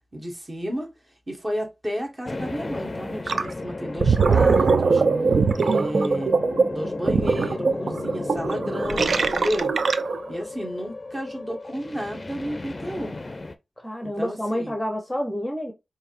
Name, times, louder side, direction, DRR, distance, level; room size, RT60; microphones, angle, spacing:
voice 1, 0.1-0.9 1.3-5.0 5.5-6.3 6.7-9.7 10.3-13.2 14.0-14.8, equal, 30° right, 1.4 m, -32 dB
sound 1, 2.2-13.5, left 2 dB, 35° left, 0.5 m, -34 dB
Gurgling, 3.3-3.5 3.9-10.3, right 4 dB, 70° right, 0.4 m, -21 dB
voice 2, 13.8-15.7, equal, 10° left, 0.7 m, -28 dB
4.7 x 2.7 x 2.5 m
wide cardioid pair, 75°, 0 cm